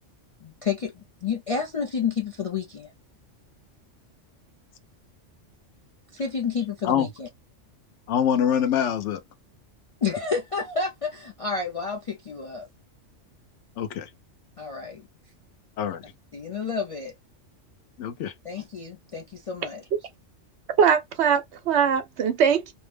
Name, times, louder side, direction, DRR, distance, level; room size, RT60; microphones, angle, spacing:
voice 1, 0.4-2.9 6.1-7.3 10.0-12.7 14.6-15.0 16.3-17.1 18.4-19.8, left 5 dB, 50° left, 0.4 m, -30 dB
voice 2, 8.1-9.2 13.8-14.1 15.8-16.0 18.0-18.3, left 9 dB, 75° left, 0.9 m, -24 dB
voice 3, 20.8-22.7, right 7 dB, 70° right, 0.9 m, -21 dB
2.7 x 2.1 x 3.2 m
omnidirectional pair, 1.2 m